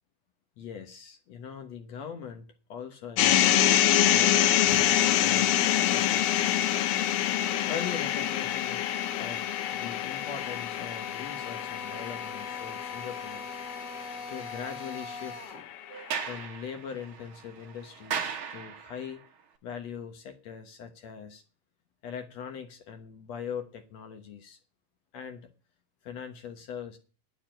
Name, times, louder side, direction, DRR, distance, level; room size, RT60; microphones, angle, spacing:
voice 1, 0.6-6.5 7.7-8.9 9.2-9.4 9.7-13.4 14.3-15.6 16.2-19.2 19.6-21.4 22.0-24.6 25.1-25.5 26.0-27.0, left 7 dB, 60° left, 6 dB, 1.9 m, -41 dB
sound 1, 3.2-15.3, left 11 dB, 80° left, 2.7 m, -26 dB
Drill, 4.6-15.7, left 5 dB, 40° left, 4.1 m, -41 dB
Sliding door, 15.9-19.2, right 6 dB, 70° right, 1.2 m, -37 dB
9.8 x 7.0 x 8.9 m, 0.36 s
omnidirectional pair, 4.3 m